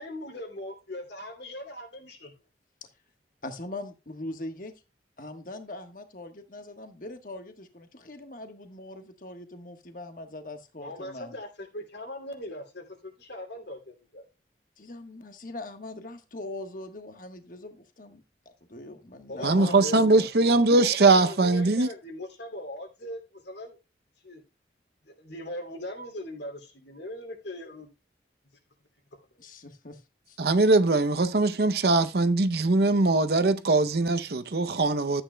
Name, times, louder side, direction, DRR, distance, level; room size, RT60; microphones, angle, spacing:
voice 1, 0.0-2.3 10.8-13.8 14.1-14.2 19.3-20.0 20.8-23.8 24.2-24.4 25.1-27.9, left 1 dB, 70° left, 2.6 m, -40 dB
voice 2, 3.4-4.7 5.2-11.3 14.8-18.2 18.7-20.6 29.4-30.0 30.3-30.4, left 2 dB, 45° left, 1.3 m, -41 dB
voice 3, 19.4-21.9 30.4-35.2, right 3 dB, 60° right, 0.6 m, -21 dB
13.0 x 8.9 x 2.2 m
head